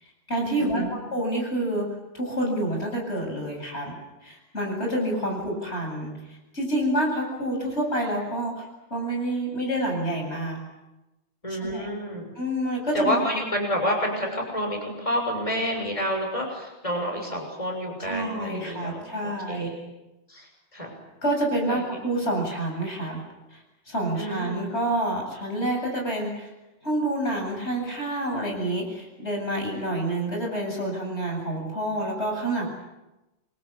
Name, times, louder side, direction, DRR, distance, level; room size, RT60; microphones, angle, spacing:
voice 1, 0.0-1.9 2.1-3.9 4.2-10.6 11.5-11.9 12.4-13.2 18.0-19.7 21.2-23.2 23.5-26.5 26.8-32.6, right 1 dB, 75° left, 0 dB, 8.4 m, -28 dB
voice 2, 0.6-1.0 11.4-12.3 12.9-19.9 20.3-20.9 21.7-21.8 24.1-24.7, equal, 30° left, 2 dB, 6.9 m, -29 dB
28.5 x 24.0 x 8.6 m, 1.0 s
omnidirectional pair, 1.1 m